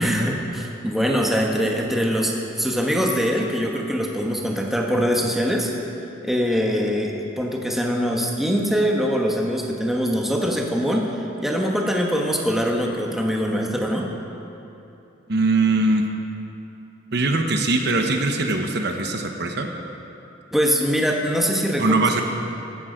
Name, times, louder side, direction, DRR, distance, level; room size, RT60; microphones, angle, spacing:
voice 1, 0.0-5.7 6.2-11.1 11.4-14.1 20.5-22.0, equal, ahead, -1 dB, 1.2 m, -23 dB
voice 2, 15.3-16.1 17.1-19.7 21.8-22.2, right 2 dB, 60° right, 3 dB, 1.0 m, -21 dB
15.0 x 12.5 x 5.1 m, 2.9 s
head